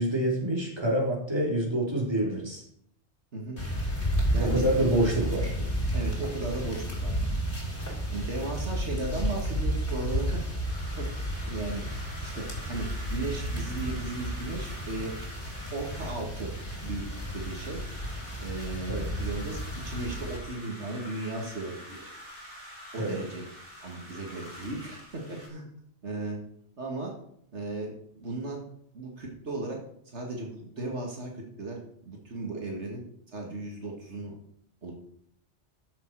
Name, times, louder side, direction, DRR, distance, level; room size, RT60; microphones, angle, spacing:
voice 1, 0.0-2.6 4.4-5.5 18.9-19.1 23.0-23.2, right 1 dB, 20° right, -2 dB, 3.5 m, -27 dB
sound 1, 3.6-20.4, equal, 50° left, 3.8 m, -32 dB
voice 2, 5.6-7.3 8.1-10.4 11.0-11.8 12.2-15.1 15.7-16.5 16.8-17.0 17.3-17.8 18.4-22.0 22.9-23.4 23.8-25.7 26.0-26.4 26.8-27.2 27.5-28.6 28.9-29.8 30.1-31.8 32.0-33.0 33.3-34.3 34.8-34.9, right 2 dB, 75° right, 0 dB, 2.4 m, -36 dB
sound 2, 10.6-25.5, equal, 50° right, 5.0 m, -47 dB
13.5 x 7.5 x 4.8 m, 0.68 s
omnidirectional pair, 1.2 m